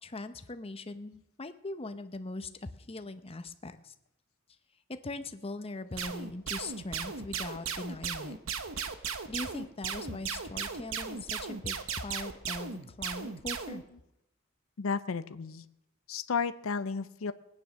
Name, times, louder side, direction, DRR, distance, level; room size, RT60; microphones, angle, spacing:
voice 1, 0.0-3.9 4.9-8.4 9.3-13.8, left 2 dB, 30° left, 10 dB, 0.8 m, -41 dB
sound 1, 6.0-13.8, right 6 dB, 75° right, 1.0 m, -36 dB
voice 2, 14.8-15.7 16.1-17.3, left 5 dB, 85° left, 13 dB, 0.6 m, -33 dB
19.0 x 9.5 x 6.3 m, 0.86 s
head